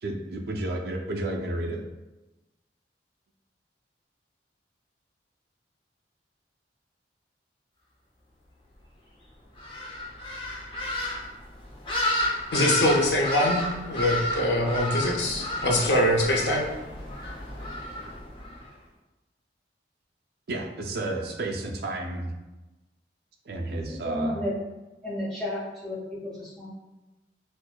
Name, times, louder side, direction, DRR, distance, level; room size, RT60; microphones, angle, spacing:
voice 1, 0.0-1.8 20.5-22.3 23.5-24.4, right 2 dB, 60° right, 2 dB, 0.4 m, -31 dB
sound 1, 9.6-18.6, left 1 dB, 30° left, 0.6 m, -32 dB
voice 2, 12.5-16.7, left 1 dB, 70° left, -1 dB, 0.6 m, -23 dB
voice 3, 24.0-24.5 25.0-26.7, left 1 dB, 5° left, -8 dB, 0.9 m, -32 dB
4.3 x 2.1 x 2.3 m, 1.1 s
head